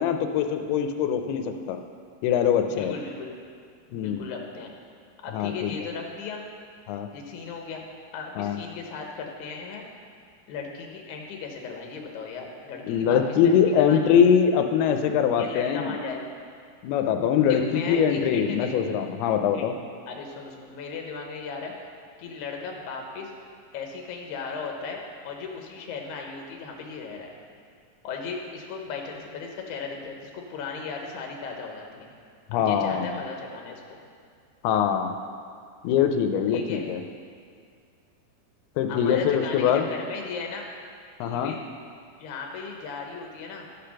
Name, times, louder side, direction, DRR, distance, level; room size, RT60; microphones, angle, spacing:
voice 1, 0.0-1.8 2.2-2.9 3.9-4.3 5.3-5.7 6.9-7.1 8.4-8.6 12.9-15.9 16.8-19.8 32.5-33.1 34.6-35.1 35.8-37.0 38.8-39.9 41.2-41.5, left 8 dB, 90° left, 6 dB, 2.6 m, -23 dB
voice 2, 2.7-3.4 3.9-4.7 5.2-6.4 7.1-7.9 8.1-9.8 10.5-14.2 15.4-16.2 17.5-18.9 19.5-19.7 20.1-21.7 22.2-23.3 23.7-27.4 28.0-32.1 32.5-34.0 36.5-36.9 38.9-40.7 41.2-41.6 42.2-43.7, left 5 dB, 65° left, 1 dB, 2.0 m, -36 dB
12.0 x 5.1 x 5.8 m, 2.2 s
omnidirectional pair, 4.4 m